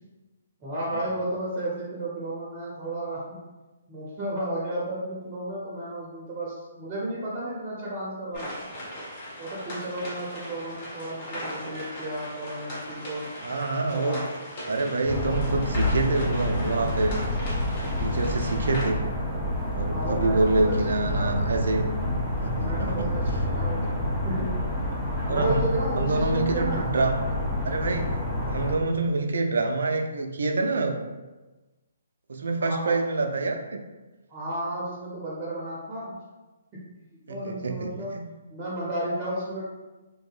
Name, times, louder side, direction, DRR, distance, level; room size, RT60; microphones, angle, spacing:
voice 1, 0.6-3.4 3.9-8.6 9.4-13.3 13.9-14.3 19.9-21.4 22.4-23.9 24.2-24.9 25.3-26.9 28.7-29.0 32.6-33.0 34.3-36.2 36.7-36.8 37.3-38.2 38.5-39.6, right 1 dB, 25° right, -6 dB, 0.7 m, -33 dB
sound 1, 8.3-18.9, equal, 40° left, 1.0 m, -38 dB
voice 2, 13.4-14.2 14.7-17.2 17.8-19.0 19.7-21.9 22.4-23.1 23.7-24.0 25.3-27.3 27.6-28.2 28.5-31.0 32.3-33.8 37.3-38.3, right 3 dB, 70° right, 4 dB, 0.4 m, -27 dB
sound 2, 15.0-28.7, left 1 dB, 10° left, 0.7 m, -28 dB
2.7 x 2.6 x 2.4 m, 1.2 s
figure-of-eight pair, 135°, 0 cm